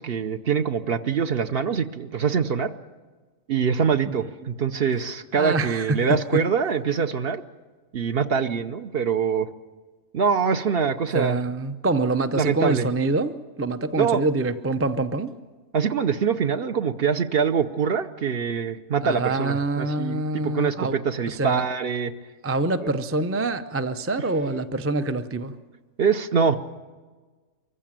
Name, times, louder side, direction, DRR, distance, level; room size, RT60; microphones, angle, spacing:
voice 1, 0.0-2.7 3.5-7.4 7.9-9.5 10.1-11.4 12.4-12.9 14.0-14.2 15.7-22.1 26.0-26.6, right 6 dB, 50° right, 9 dB, 0.9 m, -24 dB
voice 2, 5.3-6.4 11.1-15.3 19.0-21.0 21.4-21.6 22.4-25.5, right 2 dB, 15° right, 10 dB, 0.4 m, -25 dB
24.0 x 15.0 x 8.9 m, 1.4 s
omnidirectional pair, 1.4 m